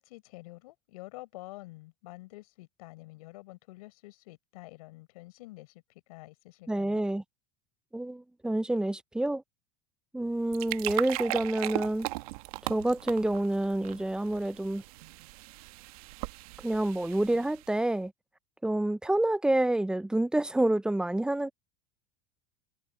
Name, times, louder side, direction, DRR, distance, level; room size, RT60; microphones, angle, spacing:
voice 1, 0.0-7.0, left 20 dB, 80° left, 5.2 m, -48 dB
voice 2, 6.7-7.2 7.9-9.4 10.1-12.1 12.7-14.8 16.6-18.1 18.6-21.5, right 1 dB, 5° right, 0.5 m, -28 dB
sound 1, 10.3-17.8, right 20 dB, 80° right, 1.2 m, -38 dB
supercardioid pair, 120°, 19 cm